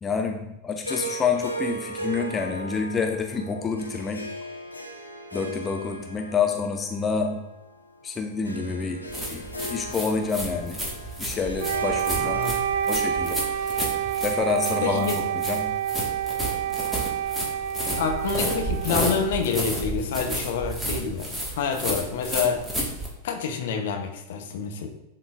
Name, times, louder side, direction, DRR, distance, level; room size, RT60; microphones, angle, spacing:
voice 1, 0.0-4.3 5.3-7.4 8.0-10.8 11.2-12.4 12.9-13.4 14.2-15.7, left 5 dB, 20° left, 3 dB, 0.5 m, -28 dB
Harp, 0.8-15.2, right 1 dB, 85° left, 0.6 m, -38 dB
sound 1, 9.1-23.1, right 1 dB, 5° right, 1.6 m, -31 dB
Wind instrument woodwind instrument, 11.6-19.6, right 10 dB, 55° right, 0.3 m, -28 dB
voice 2, 12.2-12.6 14.8-15.2 18.0-21.3 21.5-22.6 23.2-24.9, left 6 dB, 55° left, 4 dB, 0.8 m, -27 dB
10.5 x 3.8 x 2.5 m, 0.91 s
figure-of-eight pair, 90°, 0 cm